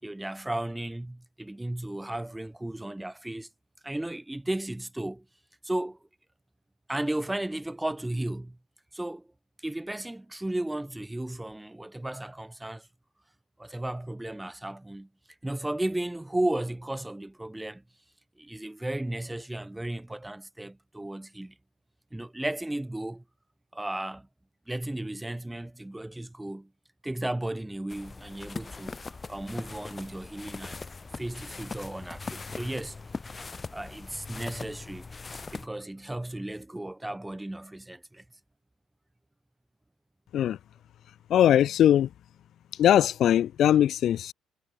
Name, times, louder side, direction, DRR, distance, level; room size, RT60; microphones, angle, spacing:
voice 1, 0.0-3.5 3.8-5.3 5.6-6.0 6.9-8.6 8.9-9.3 9.6-12.9 13.6-15.1 15.4-17.8 18.4-21.6 22.1-23.2 23.7-24.3 24.7-26.7 27.0-29.0 29.3-30.8 31.2-33.0 33.7-35.1 35.5-38.2, right 1 dB, 10° right, 5.3 m, -34 dB
sound 1, 27.9-35.7, left 4 dB, 25° left, 2.1 m, -40 dB
voice 2, 41.3-42.1 42.8-44.3, left 11 dB, 60° left, 1.0 m, -21 dB
cardioid pair, 95°, 0 cm